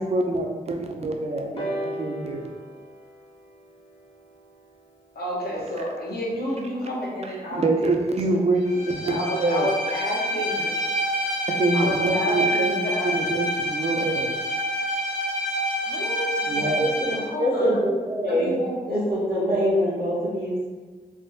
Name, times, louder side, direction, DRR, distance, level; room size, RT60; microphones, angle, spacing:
voice 1, 0.0-2.6 7.5-9.8 11.5-14.4 16.5-16.8, right 2 dB, 40° right, 3 dB, 0.4 m, -25 dB
sound 1, 1.6-5.4 6.3-6.4, equal, 30° left, 0.6 m, -36 dB
voice 2, 5.1-7.6 8.2-8.4 9.0-10.8 11.7-13.3 15.9-16.3 17.0-17.9 18.3-18.8, left 1 dB, 75° left, -4 dB, 0.8 m, -30 dB
Bowed string instrument, 8.6-17.3, equal, 50° left, 1.0 m, -27 dB
voice 3, 16.5-18.6 18.9-20.7, equal, 65° right, -9 dB, 0.8 m, -24 dB
3.4 x 2.5 x 2.6 m, 1.4 s
wide cardioid pair, 125°, 16 cm